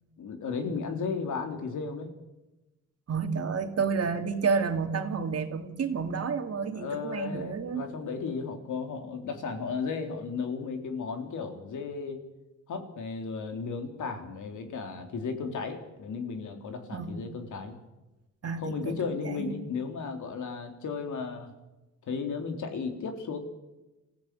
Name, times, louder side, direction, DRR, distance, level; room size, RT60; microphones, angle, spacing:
voice 1, 0.2-2.1 6.7-12.2 12.7-17.8 18.6-21.5 22.1-23.4, left 5 dB, 75° left, 5 dB, 3.6 m, -34 dB
voice 2, 3.1-7.9 16.9-17.2 18.4-19.6, right 5 dB, 55° right, 6 dB, 2.5 m, -30 dB
25.0 x 15.5 x 8.3 m, 1.0 s
cardioid pair, 90°, 30 cm